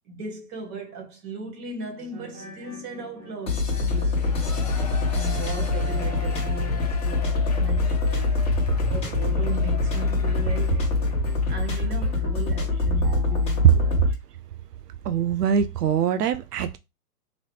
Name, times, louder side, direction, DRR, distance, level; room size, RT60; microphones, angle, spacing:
voice 1, 0.0-4.5 4.8-8.4 8.9-10.8 11.5-14.0, right 3 dB, 25° right, 1.3 m, -37 dB
sound 1, 1.9-13.8, right 2 dB, 45° right, 2.2 m, -45 dB
sound 2, 3.5-14.1, left 3 dB, 15° left, 0.9 m, -24 dB
Shout / Cheering, 3.8-12.2 12.6-12.7, left 3 dB, 30° left, 0.4 m, -41 dB
voice 2, 15.0-16.8, right 10 dB, 80° right, 0.5 m, -21 dB
3.8 x 3.1 x 3.1 m
hypercardioid pair, 145°, 47 cm